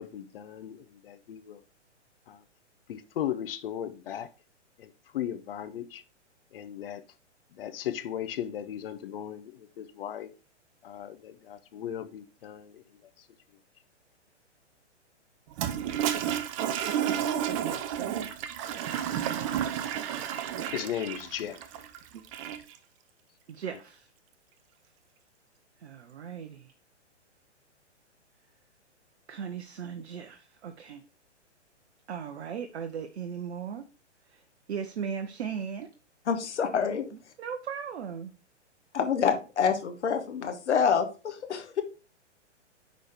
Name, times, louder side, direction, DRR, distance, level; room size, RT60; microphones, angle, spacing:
voice 1, 0.0-1.6 2.3-2.4 2.9-4.3 4.8-6.0 6.5-7.0 7.5-10.3 10.8-12.8 13.2-13.3 20.7-21.6, left 10 dB, 50° left, 0.8 m, -37 dB
Toilet flush, 15.5-22.8, right 10 dB, 30° right, 0.6 m, -31 dB
voice 2, 17.6-18.3 23.5-24.1 25.8-26.7 29.3-31.0 32.1-33.8 34.3-34.4 34.7-35.9 37.4-38.3, right 7 dB, 60° right, 0.9 m, -37 dB
voice 3, 36.3-37.1 38.9-41.8, left 6 dB, 70° left, 1.6 m, -27 dB
10.0 x 4.1 x 3.6 m
hypercardioid pair, 130°, 36 cm